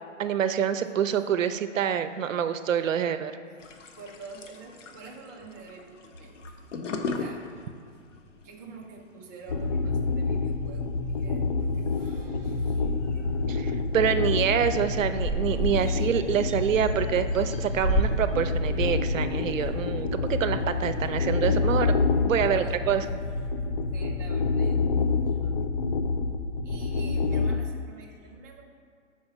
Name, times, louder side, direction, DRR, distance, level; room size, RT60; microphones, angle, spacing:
voice 1, 0.2-3.3 13.5-21.9 22.2-23.1, right 8 dB, 85° right, 10 dB, 0.6 m, -26 dB
sound 1, 3.6-22.0, left 4 dB, 75° left, 0.8 m, -44 dB
voice 2, 3.9-6.6 7.0-7.5 7.9-8.0 8.4-12.8 14.1-14.4 15.5-15.6 22.4-22.8 23.9-25.8 26.6-28.6, right 4 dB, 15° right, -2 dB, 0.3 m, -47 dB
sound 2, 9.5-27.6, left 4 dB, 50° left, 0.5 m, -27 dB
sound 3, 12.8-13.5 14.0-14.1 14.3-14.6 14.8-19.8, right 2 dB, 30° left, 1.4 m, -32 dB
4.7 x 4.3 x 5.7 m, 2.2 s
hypercardioid pair, 135°, 38 cm